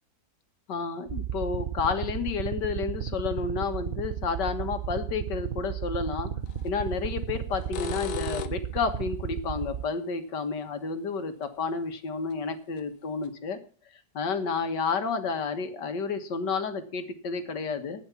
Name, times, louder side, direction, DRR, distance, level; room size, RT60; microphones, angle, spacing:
voice 1, 0.7-6.3 6.6-13.6 14.2-18.0, left 5 dB, 90° left, 8 dB, 2.1 m, -31 dB
sound 1, 1.1-9.8, right 9 dB, 65° right, 0.5 m, -34 dB
sound 2, 6.5-6.7 7.5-8.8 11.4-11.5 12.3-12.4 12.8-12.9 13.2-13.3, left 8 dB, 65° left, 1.4 m, -36 dB
12.0 x 8.8 x 7.0 m, 0.41 s
omnidirectional pair, 1.8 m